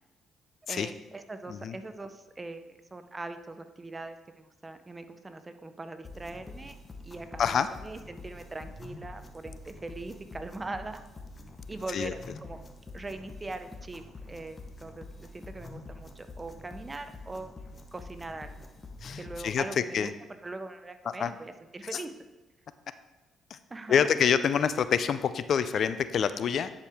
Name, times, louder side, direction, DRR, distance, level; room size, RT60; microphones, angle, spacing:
voice 1, 0.7-6.7 7.0-11.0 11.7-12.6 12.9-15.1 15.3-17.5 17.9-18.7 19.2-20.1 20.4-22.1 23.7-24.1, right 2 dB, 20° right, 9 dB, 0.6 m, -41 dB
sound 1, 6.0-19.7, left 2 dB, 30° left, 0.8 m, -46 dB
voice 2, 19.0-19.6 19.9-20.1 21.2-21.3 21.9-22.0 23.5-23.6 23.9-26.7, left 7 dB, 60° left, 13 dB, 0.3 m, -26 dB
10.0 x 4.7 x 3.4 m, 1.1 s
cardioid pair, 90°, 0 cm